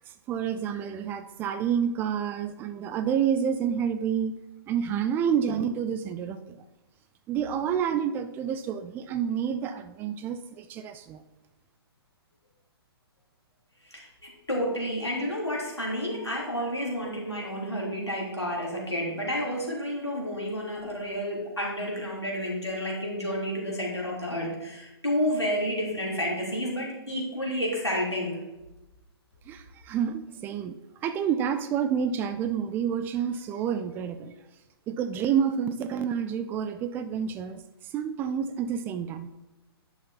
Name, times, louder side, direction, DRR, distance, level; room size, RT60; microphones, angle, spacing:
voice 1, 0.3-4.3 4.7-6.6 7.3-11.2 29.5-30.7 31.0-34.3 34.9-37.6 37.9-39.3, right 8 dB, 15° right, 11 dB, 0.4 m, -29 dB
voice 2, 13.8-28.4, equal, 90° left, -3 dB, 3.5 m, -30 dB
10.5 x 6.5 x 4.3 m, 1.0 s
figure-of-eight pair, 120°, 14 cm